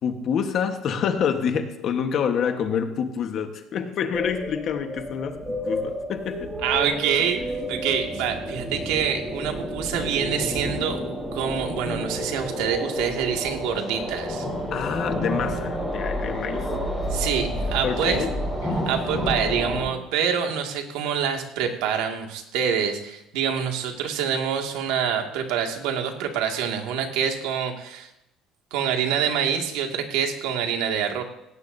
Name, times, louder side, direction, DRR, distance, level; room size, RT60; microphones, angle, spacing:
voice 1, 0.0-6.6 14.7-16.7 17.8-18.4, left 7 dB, 40° left, 7 dB, 1.2 m, -27 dB
sound 1, 4.1-19.8, equal, ahead, 3.7 m, -30 dB
voice 2, 6.6-7.4 7.7-11.0 11.3-14.5 17.1-18.2 18.9-28.1 28.7-31.2, right 8 dB, 85° right, 3 dB, 2.1 m, -26 dB
17.5 x 17.0 x 2.7 m, 0.86 s
cardioid pair, 170°, 0 cm